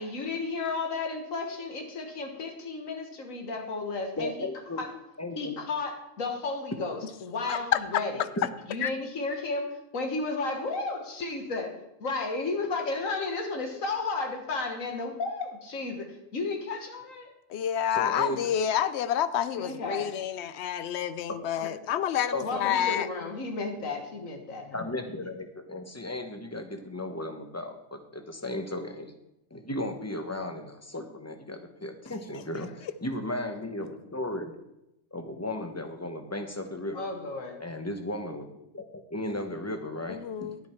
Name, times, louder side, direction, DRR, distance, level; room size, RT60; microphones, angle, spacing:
voice 1, 0.0-4.3 4.8-4.9 5.4-8.3 8.7-9.7 9.9-11.7 12.0-17.3 19.6-20.1 22.4-24.8 36.9-37.6, left 3 dB, 90° left, 4 dB, 1.9 m, -33 dB
voice 2, 4.2-4.8 5.2-5.5 8.4-8.5 17.9-18.5 22.3-22.6 24.7-29.1 29.5-34.5 35.1-37.1 37.6-40.5, left 1 dB, 15° left, 6 dB, 0.9 m, -35 dB
voice 3, 7.5-7.8 8.8-8.9 17.5-23.1 40.1-40.6, left 10 dB, 65° left, 15 dB, 0.8 m, -28 dB
10.5 x 9.4 x 4.4 m, 0.88 s
omnidirectional pair, 1.3 m